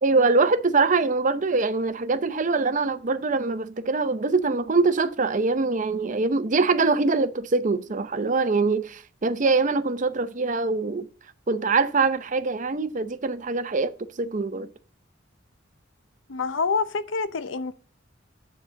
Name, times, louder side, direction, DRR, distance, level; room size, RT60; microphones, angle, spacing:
voice 1, 0.0-11.1 11.5-14.7, right 3 dB, 45° right, 0.7 m, -23 dB
voice 2, 16.3-17.7, left 4 dB, 90° left, 0.6 m, -27 dB
9.6 x 4.0 x 7.3 m
head